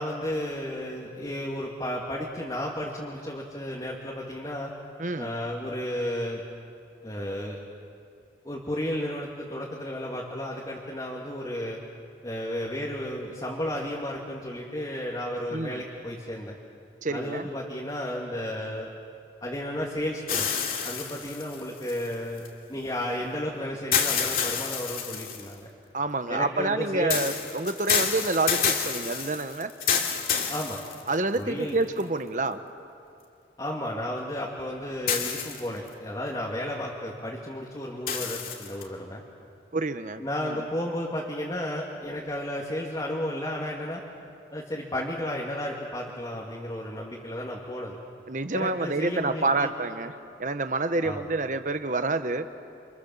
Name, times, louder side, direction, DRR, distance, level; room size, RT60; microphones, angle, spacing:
voice 1, 0.0-4.7 5.2-6.4 7.0-7.6 8.4-11.8 12.2-16.6 17.1-18.9 19.4-20.5 20.8-22.4 22.7-25.7 26.3-27.2 30.5-30.8 31.3-31.8 33.6-39.2 40.2-44.0 44.5-48.0 48.5-49.7 51.0-51.2, left 1 dB, 25° left, -3 dB, 2.5 m, -33 dB
voice 2, 5.0-5.3 15.5-15.8 17.0-17.5 25.9-29.7 31.1-32.6 39.7-40.6 48.3-50.1 50.4-52.5, right 2 dB, 45° right, 10 dB, 1.1 m, -28 dB
sound 1, 20.3-22.5 23.9-25.5 27.1-31.4 32.0-32.1 35.1-35.9 38.1-38.8, left 7 dB, 55° left, 2.8 m, -28 dB
30.0 x 27.5 x 7.3 m, 2.5 s
head